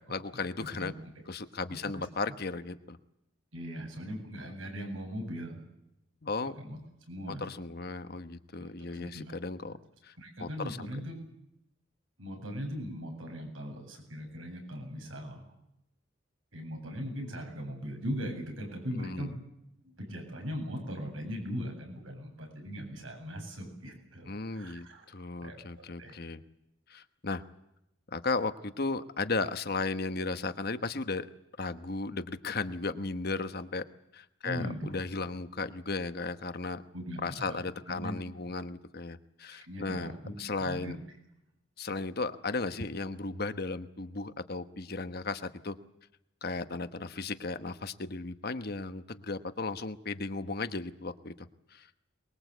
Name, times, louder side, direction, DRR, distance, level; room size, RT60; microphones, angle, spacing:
voice 1, 0.1-0.9 1.3-3.0 4.4-4.5 6.2-6.6 7.3-9.7 10.0-10.1 10.4-10.9 18.9-19.3 24.3-26.4 26.9-27.4 28.1-31.3 31.6-33.8 34.1-36.8 37.2-40.1 40.4-41.0 41.8-45.8 46.4-51.9, left 3 dB, 50° left, 10 dB, 1.1 m, -35 dB
voice 2, 1.7-2.1 3.5-5.6 6.6-6.8 7.1-7.5 8.6-9.2 10.2-11.1 12.2-15.5 16.5-19.4 19.8-25.0 25.4-25.6 26.0-26.1 34.4-35.0 36.9-37.6 37.9-38.1 39.5-40.3 40.6-41.0, equal, 80° right, 3 dB, 7.9 m, -39 dB
23.5 x 21.5 x 8.1 m, 0.84 s
head